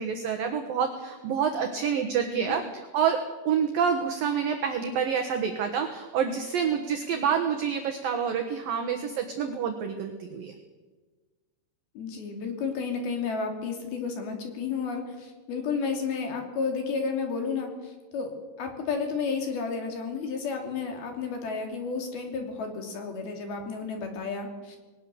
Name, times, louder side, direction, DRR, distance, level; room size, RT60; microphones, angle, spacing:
voice 1, 0.0-3.2 3.5-10.5, right 7 dB, 65° right, 4 dB, 2.5 m, -28 dB
voice 2, 2.3-2.6 11.9-18.3 18.6-24.8, left 5 dB, 55° left, 3 dB, 4.4 m, -32 dB
20.5 x 19.0 x 6.9 m, 1.3 s
omnidirectional pair, 5.5 m